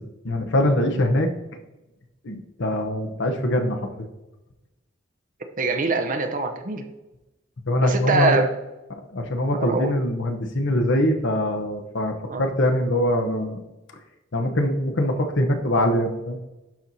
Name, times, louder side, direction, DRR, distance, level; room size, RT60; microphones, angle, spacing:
voice 1, 0.2-1.3 2.2-3.9 7.7-8.4 9.1-13.6 14.3-16.4, left 1 dB, 65° left, 5 dB, 0.9 m, -23 dB
voice 2, 5.6-6.8 7.8-8.5 9.6-9.9 12.3-12.4, right 3 dB, 45° right, 6 dB, 0.7 m, -23 dB
12.0 x 4.4 x 2.7 m, 1.0 s
head